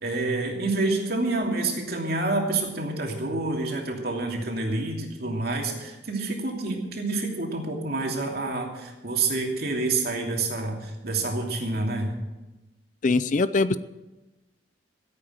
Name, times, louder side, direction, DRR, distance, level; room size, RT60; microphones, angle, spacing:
voice 1, 0.0-12.1, right 2 dB, 55° right, 1 dB, 2.8 m, -28 dB
voice 2, 13.0-13.8, left 3 dB, 40° left, 15 dB, 0.4 m, -22 dB
15.5 x 8.6 x 7.7 m, 1.1 s
head